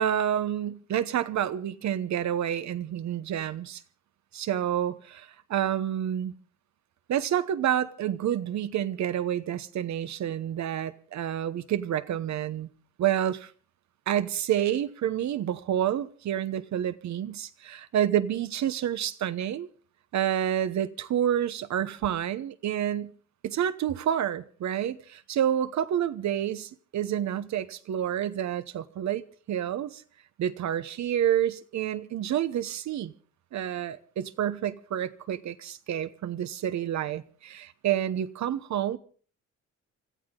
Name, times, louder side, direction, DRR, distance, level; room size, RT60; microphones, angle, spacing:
voice 1, 0.0-3.8 4.3-6.3 7.1-12.7 13.0-13.5 14.1-19.7 20.1-23.1 23.4-30.0 30.4-33.1 33.5-39.0, right 10 dB, 65° right, 1.0 m, -29 dB
25.0 x 14.0 x 3.8 m
cardioid pair, 90°, 30 cm